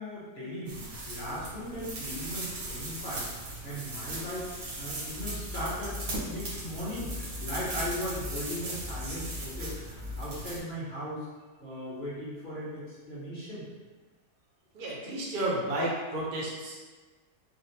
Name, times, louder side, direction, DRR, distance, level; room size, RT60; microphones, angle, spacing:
voice 1, 0.0-3.3 3.6-4.5 4.8-7.1 7.4-9.8 10.2-11.3 11.6-13.7, equal, 35° left, -8 dB, 1.5 m, -37 dB
sound 1, 0.7-10.6, right 1 dB, 90° right, 1.5 m, -38 dB
voice 2, 14.7-16.7, right 1 dB, 45° right, -5 dB, 0.9 m, -32 dB
6.0 x 2.0 x 3.3 m, 1.3 s
omnidirectional pair, 1.5 m